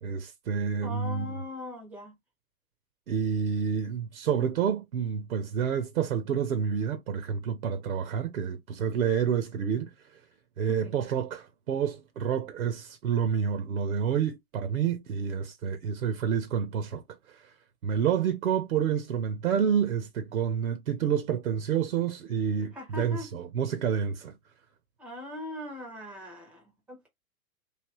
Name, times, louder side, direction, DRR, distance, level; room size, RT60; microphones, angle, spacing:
voice 1, 0.0-1.3 3.1-9.9 10.6-17.0 17.3-17.5 17.8-24.3, right 7 dB, 70° right, 0.6 m, -29 dB
voice 2, 0.8-2.1 10.7-10.9 22.6-23.3 25.0-27.1, left 2 dB, 5° right, 0.4 m, -40 dB
3.2 x 2.7 x 2.9 m
figure-of-eight pair, 105°, 43 cm